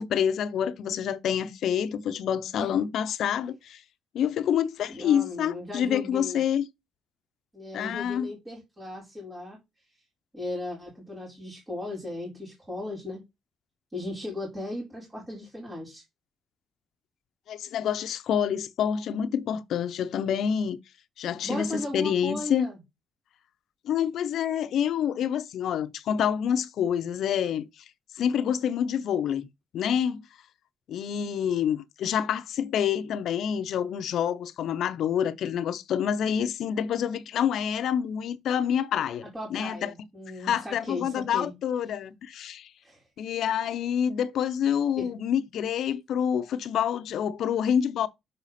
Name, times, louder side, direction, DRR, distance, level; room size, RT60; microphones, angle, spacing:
voice 1, 0.0-3.8 4.1-6.7 7.7-8.3 17.5-20.8 21.2-22.7 23.8-27.7 28.1-29.5 29.7-30.2 30.9-39.9 40.4-42.7 43.2-48.1, left 8 dB, 65° left, 0.6 m, -27 dB
voice 2, 4.9-6.4 7.5-9.6 10.3-13.2 13.9-16.0 21.4-22.8 39.2-41.5 42.8-43.0 45.0-45.1, left 2 dB, 15° right, 3.7 m, -36 dB
6.6 x 4.8 x 4.2 m
cardioid pair, 130°, 0 cm